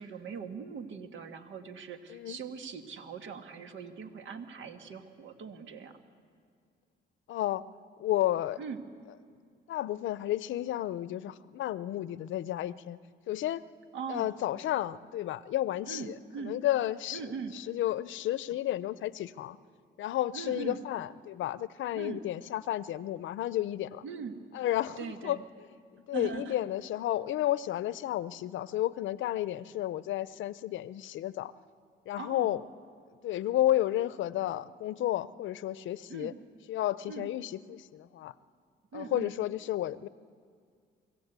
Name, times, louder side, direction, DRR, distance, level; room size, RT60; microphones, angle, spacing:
voice 1, 0.0-6.0 8.6-8.8 13.9-14.3 15.9-16.6 17.1-17.6 20.3-20.8 21.9-22.2 24.0-24.5 25.0-25.4 26.1-26.6 32.1-32.6 36.1-36.4 37.1-37.3 38.9-39.3, right 6 dB, 75° right, 7 dB, 1.8 m, -41 dB
voice 2, 7.3-7.6 8.0-8.6 9.7-13.0 13.3-13.6 14.1-17.2 17.5-19.6 20.0-24.0 24.5-25.4 25.9-31.5 32.1-32.6 33.2-36.3 36.7-38.3 38.9-40.1, left 13 dB, 75° left, 17 dB, 0.6 m, -32 dB
25.5 x 15.0 x 8.2 m, 2.1 s
cardioid pair, 90°, 20 cm